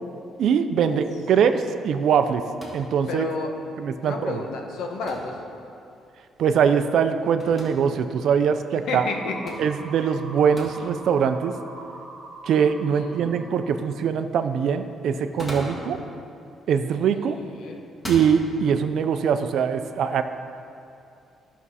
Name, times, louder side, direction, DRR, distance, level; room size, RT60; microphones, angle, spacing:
voice 1, 0.4-2.4 2.7-3.3 3.8-4.4 6.4-9.0 9.6-11.5 12.5-16.0 16.7-17.4 18.1-20.2, right 7 dB, 60° right, 9 dB, 0.5 m, -22 dB
sound 1, 2.6-2.9 5.1-5.4 7.4-7.7 9.5-9.7 10.6-10.8 11.8-11.9 15.2-15.9 17.0-17.3 17.9-18.3, equal, 15° left, 1.7 m, -36 dB
voice 2, 3.1-3.5 4.0-5.4 8.9-9.6 12.8-13.5 17.2-17.9, left 4 dB, 80° left, 2 dB, 1.1 m, -31 dB
sound 2, 9.1-14.1, right 2 dB, 35° right, 1.2 m, -43 dB
13.5 x 6.0 x 4.1 m, 2.6 s
cardioid pair, 160°, 0 cm